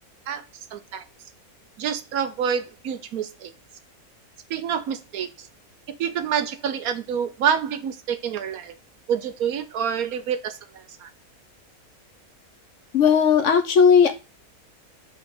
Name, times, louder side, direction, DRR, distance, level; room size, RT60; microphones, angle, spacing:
voice 1, 0.7-1.0 1.8-3.5 4.5-5.5 6.0-8.7 9.1-11.1, right 8 dB, 70° right, 10 dB, 1.2 m, -27 dB
voice 2, 12.9-14.1, left 6 dB, 55° left, 7 dB, 1.0 m, -16 dB
5.3 x 3.7 x 5.3 m, 0.28 s
omnidirectional pair, 1.6 m